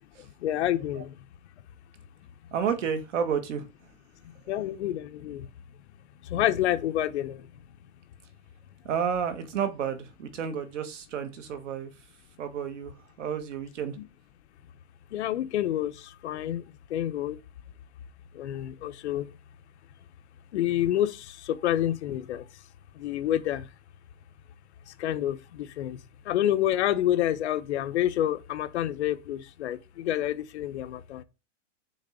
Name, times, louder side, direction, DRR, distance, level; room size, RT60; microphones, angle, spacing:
voice 1, 0.4-1.1 4.5-5.5 6.3-7.4 14.0-14.1 15.1-16.6 16.9-17.4 18.4-19.3 20.5-22.4 23.0-23.7 25.0-26.0 26.3-31.2, left 12 dB, 65° left, 0.8 m, -28 dB
voice 2, 2.5-3.7 8.8-11.9 12.4-14.0, right 7 dB, 70° right, 1.6 m, -31 dB
6.4 x 3.6 x 4.9 m
supercardioid pair, 175°, 37 cm